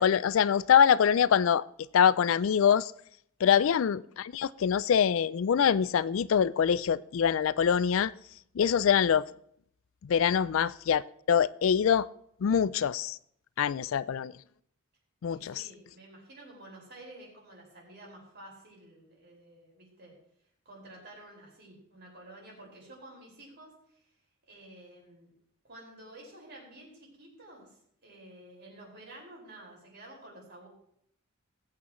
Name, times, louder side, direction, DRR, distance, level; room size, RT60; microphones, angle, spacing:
voice 1, 0.0-1.6 1.9-2.9 3.4-8.1 8.6-9.3 10.0-11.0 11.3-12.1 12.4-13.2 13.6-14.3 15.2-15.5, left 8 dB, 70° left, 18 dB, 0.4 m, -24 dB
voice 2, 13.8-14.5 15.3-20.2 20.7-24.1 24.5-25.3 25.6-30.7, right 1 dB, 55° right, -2 dB, 5.5 m, -51 dB
20.0 x 8.6 x 3.1 m, 0.68 s
head